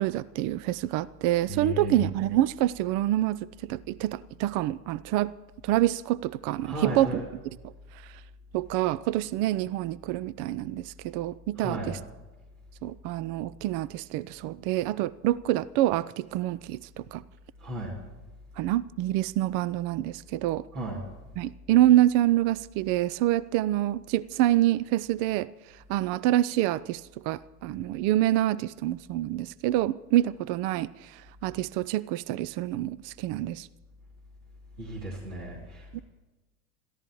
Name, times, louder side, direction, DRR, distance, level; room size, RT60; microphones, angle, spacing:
voice 1, 0.0-5.3 5.6-7.2 8.5-12.0 12.8-17.2 18.6-20.7 21.4-25.5 25.9-27.0 27.3-33.7 35.9-36.0, right 14 dB, 45° right, 0.5 m, -26 dB
voice 2, 1.5-2.0 6.6-7.2 11.6-11.9 17.6-17.9 20.7-21.0 34.8-36.0, right 1 dB, 75° right, 2.9 m, -34 dB
28.0 x 14.5 x 3.0 m
figure-of-eight pair, 75°, 45 cm